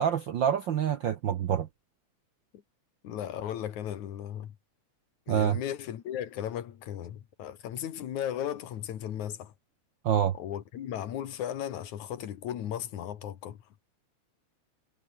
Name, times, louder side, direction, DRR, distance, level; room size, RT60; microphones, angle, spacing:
voice 1, 0.0-1.7 5.3-5.6 10.0-10.3, right 9 dB, 70° right, 1.1 m, -26 dB
voice 2, 3.0-4.5 5.3-9.5 10.3-13.6, left 10 dB, 80° left, 3.1 m, -36 dB
omnidirectional pair, 3.3 m